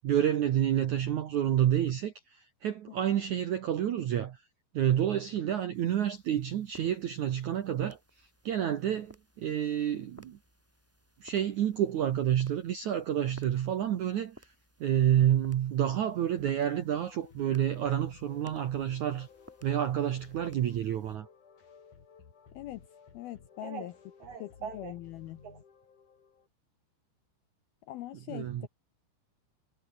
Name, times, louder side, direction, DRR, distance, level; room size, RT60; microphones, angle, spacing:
voice 1, 0.0-4.4 4.7-8.0 8.5-10.4 11.2-14.4 14.8-19.3 19.6-21.3 23.6-23.9 24.2-24.9 25.4-25.6 28.3-28.7, right 10 dB, 70° right, 1.8 m, -29 dB
sound 1, 5.7-21.2, equal, 5° right, 5.9 m, -59 dB
sound 2, 16.4-26.5, left 6 dB, 45° left, 4.6 m, -56 dB
voice 2, 23.1-23.9 24.4-25.4 27.9-28.7, left 15 dB, 75° left, 2.3 m, -42 dB
omnidirectional pair, 5.3 m